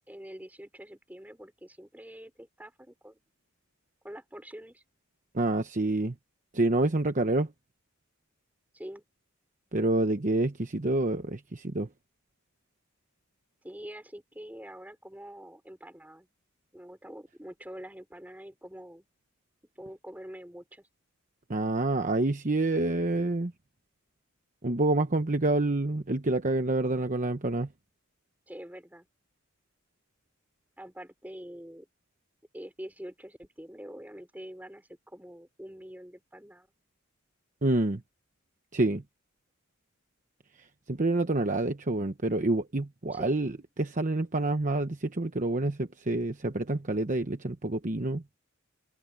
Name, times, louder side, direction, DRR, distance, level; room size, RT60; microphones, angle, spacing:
voice 1, 0.1-3.2 4.0-4.8 8.7-9.0 13.6-16.3 16.7-19.1 19.7-20.9 28.5-29.1 30.8-31.9 32.5-36.7 43.1-43.4, equal, 10° right, 5.1 m, -45 dB
voice 2, 5.3-6.1 6.5-7.5 9.7-11.9 21.5-23.5 24.6-27.7 37.6-38.0 38.7-39.0 40.6-43.5 43.8-48.4, right 2 dB, 35° right, 1.0 m, -27 dB
head